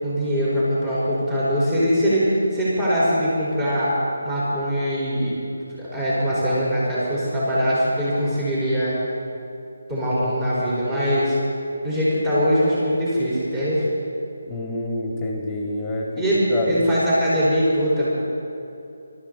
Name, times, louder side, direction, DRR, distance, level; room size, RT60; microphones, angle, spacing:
voice 1, 0.0-3.9 4.2-5.3 5.7-8.9 9.9-11.4 11.8-13.9 16.2-18.1, equal, 15° right, -9 dB, 4.9 m, -22 dB
voice 2, 14.5-16.1 16.5-16.8, left 1 dB, 15° left, -2 dB, 2.3 m, -27 dB
24.5 x 13.5 x 4.2 m, 2.8 s
figure-of-eight pair, 155°, 0 cm